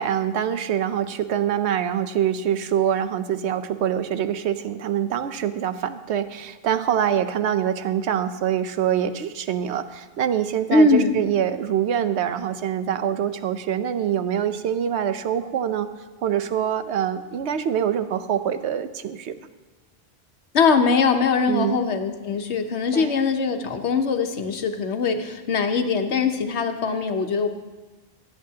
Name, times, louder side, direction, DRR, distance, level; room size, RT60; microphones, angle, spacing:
voice 1, 0.0-15.9 16.2-19.4 21.5-21.8 22.9-23.1, right 9 dB, 85° right, 10 dB, 1.0 m, -25 dB
voice 2, 10.7-11.1 20.5-27.5, left 4 dB, 85° left, 6 dB, 1.2 m, -21 dB
25.0 x 8.5 x 2.8 m, 1.2 s
omnidirectional pair, 1.1 m